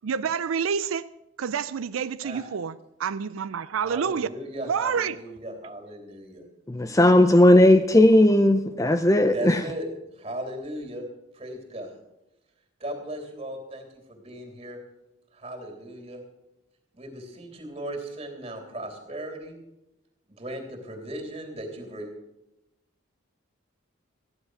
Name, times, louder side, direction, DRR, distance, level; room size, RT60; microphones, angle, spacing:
voice 1, 0.0-1.1 1.4-2.7 3.0-4.3 4.7-5.2, right 6 dB, 85° right, 0.4 m, -28 dB
voice 2, 3.8-6.4 9.3-9.9 10.2-11.0 11.3-11.9 12.8-14.8 15.3-16.2 16.9-19.5 20.3-22.1, right 1 dB, 30° right, 3.1 m, -37 dB
voice 3, 6.7-9.6, left 1 dB, 15° left, 0.5 m, -17 dB
14.5 x 10.5 x 6.4 m
head